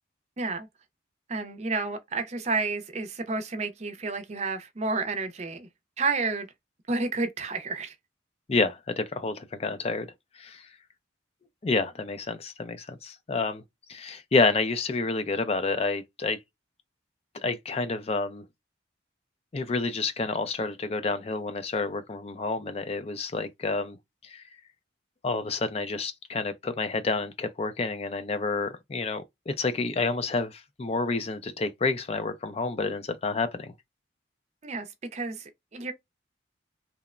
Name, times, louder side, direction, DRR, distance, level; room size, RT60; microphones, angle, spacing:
voice 1, 0.4-0.7 1.3-5.7 6.0-6.5 6.9-7.9 34.6-34.9 35.1-35.9, right 3 dB, 35° right, 0.5 m, -30 dB
voice 2, 8.5-10.1 10.4-10.6 11.6-13.6 13.9-16.4 17.4-18.4 19.5-24.0 24.2-24.4 25.2-33.7, left 3 dB, 35° left, 0.4 m, -29 dB
2.9 x 2.1 x 2.4 m
head